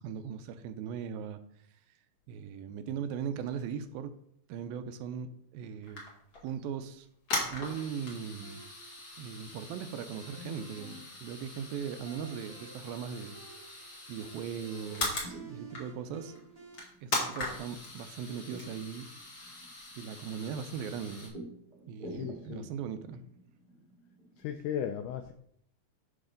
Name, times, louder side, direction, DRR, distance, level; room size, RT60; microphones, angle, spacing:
voice 1, 0.0-1.4 2.3-4.1 4.5-6.0 6.4-7.1 7.5-8.6 9.2-16.3 17.0-19.1 20.0-21.4 21.9-23.2, right 7 dB, 80° right, 10 dB, 2.3 m, -39 dB
sound 1, 5.8-6.5 7.0-15.3 15.7-16.1 16.4-16.5 16.7-21.3, left 2 dB, 40° left, 2.3 m, -40 dB
sound 2, 8.4-16.8, right 3 dB, 45° right, 1.1 m, -52 dB
sound 3, 14.9-24.5, right 1 dB, 20° right, 1.2 m, -51 dB
voice 2, 22.1-22.7 24.4-25.3, left 9 dB, 85° left, 7 dB, 1.8 m, -36 dB
11.0 x 4.0 x 5.1 m, 0.71 s
omnidirectional pair, 4.3 m